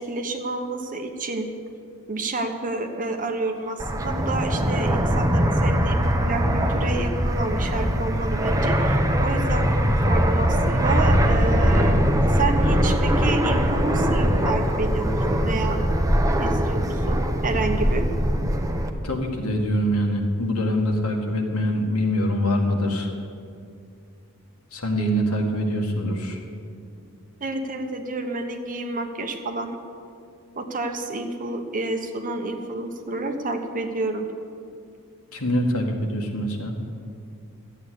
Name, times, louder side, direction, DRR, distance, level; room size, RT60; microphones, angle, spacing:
voice 1, 0.0-1.5 2.1-12.0 12.3-15.8 16.4-18.1 27.4-29.8 30.6-34.3, right 2 dB, 40° right, 5 dB, 1.1 m, -29 dB
Fixed-wing aircraft airplane, 3.8-18.9, equal, 15° right, 0.8 m, -21 dB
voice 2, 19.0-23.1 24.7-26.4 35.3-36.7, equal, 70° left, 1 dB, 1.9 m, -24 dB
13.0 x 8.6 x 8.3 m, 2.4 s
head